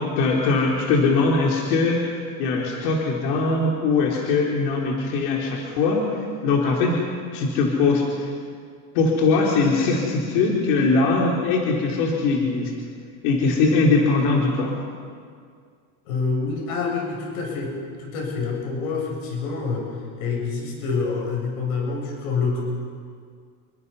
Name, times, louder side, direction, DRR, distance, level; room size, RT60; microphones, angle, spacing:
voice 1, 0.0-2.0 2.4-6.2 6.4-7.0 7.3-8.3 8.9-12.7 13.2-14.8, left 3 dB, 65° left, -2 dB, 4.1 m, -21 dB
voice 2, 16.0-19.9 20.2-22.6, left 4 dB, 85° left, -1 dB, 7.9 m, -27 dB
29.0 x 23.5 x 5.7 m, 2.1 s
supercardioid pair, 145°, 41 cm